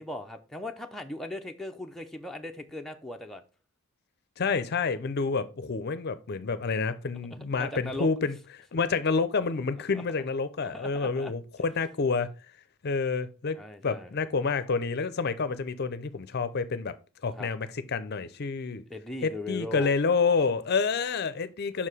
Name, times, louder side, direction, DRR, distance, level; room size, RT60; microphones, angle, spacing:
voice 1, 0.0-3.4 7.5-8.1 9.9-10.0 10.6-11.3 13.6-14.1 17.4-17.5 18.9-19.9, left 1 dB, ahead, 0.5 m, -38 dB
voice 2, 4.4-12.3 12.8-13.6 13.8-16.9 17.2-18.8 19.2-21.9, left 4 dB, 50° left, 0.5 m, -28 dB
5.7 x 4.7 x 4.8 m
head